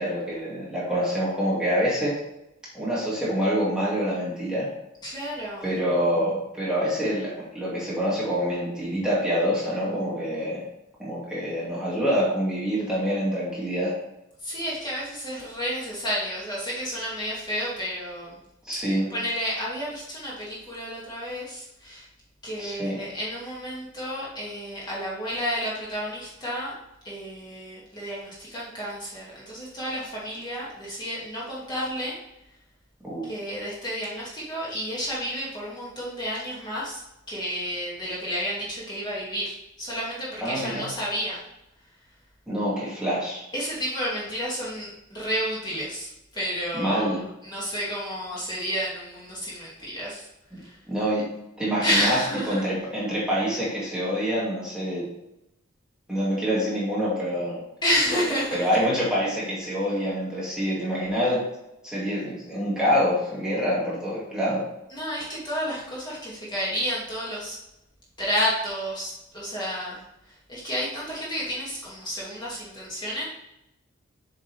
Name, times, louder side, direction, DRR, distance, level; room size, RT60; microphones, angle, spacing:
voice 1, 0.0-2.2 2.7-4.7 5.6-10.6 11.0-13.9 18.7-19.1 22.6-23.0 33.0-33.3 40.4-40.9 42.5-43.4 46.7-47.2 50.9-51.3 51.6-52.2 52.5-55.0 56.1-57.6 58.5-61.4 61.8-64.6, equal, 5° right, -8 dB, 2.2 m, -26 dB
voice 2, 5.0-5.7 14.4-18.4 19.1-22.1 22.4-26.7 27.0-32.2 33.2-37.0 37.3-41.4 43.5-50.3 50.6-50.8 51.8-52.7 57.8-58.6 64.9-67.6 68.2-70.0 70.5-73.2, equal, 20° left, -7 dB, 2.3 m, -31 dB
7.5 x 6.4 x 3.4 m, 0.86 s
head